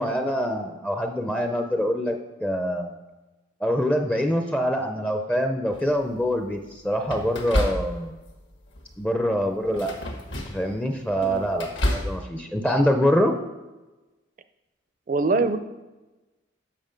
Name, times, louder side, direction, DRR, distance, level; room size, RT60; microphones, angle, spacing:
voice 1, 0.0-2.9 3.6-8.1 9.0-9.9 10.5-13.3, equal, 5° left, 5 dB, 0.5 m, -25 dB
sound 1, 5.7-6.2 7.1-8.3 8.7-9.0 9.7-10.7 11.1-12.2, left 1 dB, 65° left, 1.4 m, -29 dB
voice 2, 11.2-11.6 15.1-15.6, right 3 dB, 40° right, 10 dB, 0.5 m, -24 dB
7.5 x 6.5 x 5.2 m, 1.1 s
head